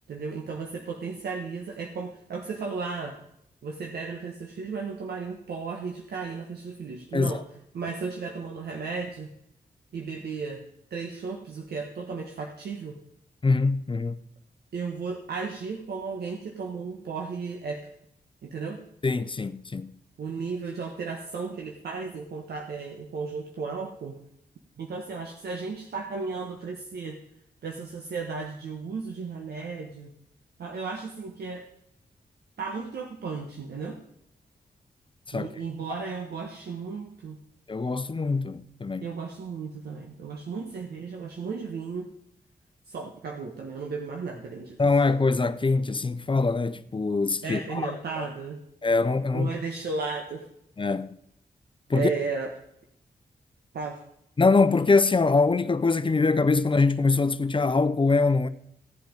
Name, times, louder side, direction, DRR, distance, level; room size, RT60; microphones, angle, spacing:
voice 1, 0.1-3.2 3.6-7.4 7.7-9.3 9.9-10.6 10.9-13.0 14.7-17.8 18.4-18.8 20.2-24.2 24.8-27.2 27.6-30.1 30.6-31.7 32.6-34.0 35.3-37.4 39.0-42.1 42.9-44.8 47.4-48.6 49.3-50.4 51.9-52.5 53.7-54.0, right 4 dB, 85° right, 1.3 m, -34 dB
voice 2, 13.4-14.2 19.0-19.9 35.3-35.5 37.7-39.1 44.8-48.3 48.8-49.5 50.8-51.1 51.9-52.1 54.4-58.5, left 3 dB, 30° left, 0.7 m, -23 dB
16.0 x 8.0 x 5.2 m
cardioid pair, 70°, 16 cm